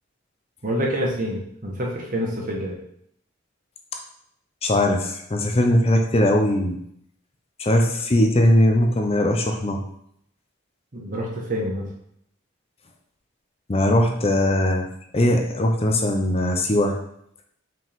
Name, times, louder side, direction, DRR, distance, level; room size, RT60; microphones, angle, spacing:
voice 1, 0.6-2.7 10.9-11.9, equal, 45° right, -2 dB, 1.5 m, -27 dB
voice 2, 4.6-6.8 7.6-9.8 13.7-14.9 15.1-17.0, left 1 dB, 30° left, 3 dB, 0.6 m, -20 dB
5.8 x 5.1 x 3.6 m, 0.72 s
head